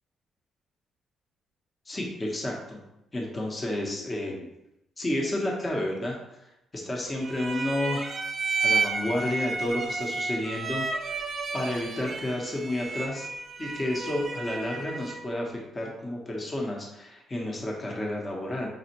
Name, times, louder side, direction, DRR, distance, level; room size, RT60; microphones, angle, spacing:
voice 1, 1.9-2.8 3.1-4.4 5.0-8.1 8.6-11.2 11.5-13.3 13.6-18.7, left 1 dB, 25° left, -1 dB, 0.9 m, -31 dB
sound 1, 7.2-15.3, right 4 dB, 40° right, 0.6 m, -32 dB
5.2 x 2.3 x 2.8 m, 0.87 s
cardioid pair, 90°, 0 cm